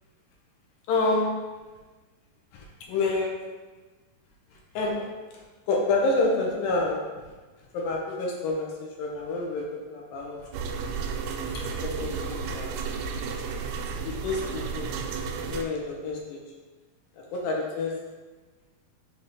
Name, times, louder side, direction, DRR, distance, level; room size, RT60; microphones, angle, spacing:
voice 1, 0.9-1.3 2.5-3.3 4.7-5.0 5.7-7.0 7.7-10.5 11.5-11.6 12.0-12.8 14.0-14.9 15.5-16.4 17.2-17.9, left 2 dB, 75° left, -1 dB, 2.5 m, -28 dB
sound 1, 10.5-15.6, right 5 dB, 90° right, 2.4 m, -32 dB
6.6 x 2.8 x 5.3 m, 1.3 s
omnidirectional pair, 4.1 m